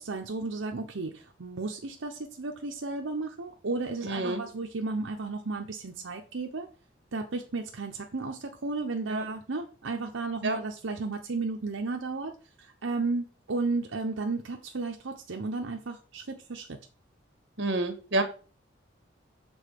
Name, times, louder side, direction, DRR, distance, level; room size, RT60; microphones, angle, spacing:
voice 1, 0.0-6.7 7.1-16.8, right 3 dB, 85° right, 3 dB, 0.8 m, -34 dB
voice 2, 4.1-4.4 9.1-9.2 10.4-10.6 17.6-18.2, right 2 dB, 65° right, 8 dB, 1.4 m, -28 dB
7.1 x 3.9 x 6.6 m, 0.36 s
head